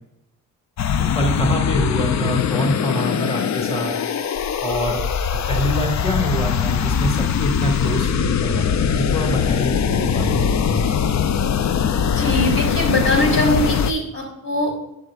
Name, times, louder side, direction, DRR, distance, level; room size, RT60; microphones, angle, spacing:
sound 1, 0.8-13.9, left 7 dB, 45° left, 0.6 m, -21 dB
voice 1, 1.2-3.9 4.6-5.0 5.5-10.8, equal, 15° left, 2 dB, 1.9 m, -25 dB
voice 2, 12.1-14.7, left 1 dB, 65° left, -2 dB, 3.4 m, -21 dB
11.0 x 7.7 x 2.4 m, 0.87 s
hypercardioid pair, 45°, 38 cm